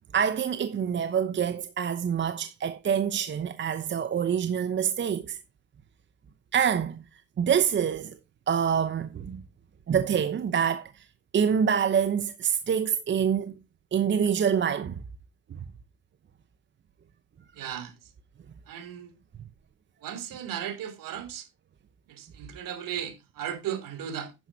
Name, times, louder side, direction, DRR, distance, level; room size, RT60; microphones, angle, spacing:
voice 1, 0.1-5.4 6.5-7.0 7.4-8.2 8.5-9.4 9.9-10.9 11.3-13.5 13.9-15.0, right 7 dB, 30° right, 0.9 m, -26 dB
voice 2, 17.5-17.9 18.7-19.1 20.0-21.5 22.1-24.3, right 9 dB, 55° right, 3.1 m, -36 dB
11.0 x 9.2 x 2.8 m
supercardioid pair, 90°, 38 cm